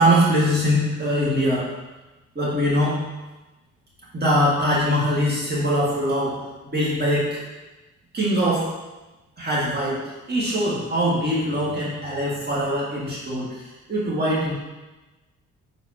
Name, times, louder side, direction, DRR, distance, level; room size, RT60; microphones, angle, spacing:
voice 1, 0.0-1.7 2.4-3.0 4.1-7.4 8.1-8.8 9.4-13.6 13.9-14.5, equal, 35° right, -6 dB, 1.9 m, -22 dB
8.1 x 4.1 x 2.9 m, 1.1 s
cardioid pair, 90°, 30 cm